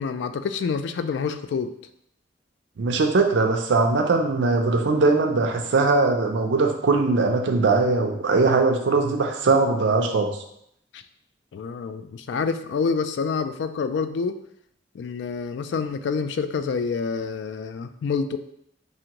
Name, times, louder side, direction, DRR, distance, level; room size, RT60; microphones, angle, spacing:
voice 1, 0.0-1.7 10.9-11.0 11.5-14.4 14.9-18.4, left 5 dB, 80° left, 10 dB, 0.3 m, -27 dB
voice 2, 2.8-10.4, right 3 dB, 85° right, 3 dB, 0.5 m, -21 dB
4.9 x 2.5 x 2.9 m, 0.73 s
head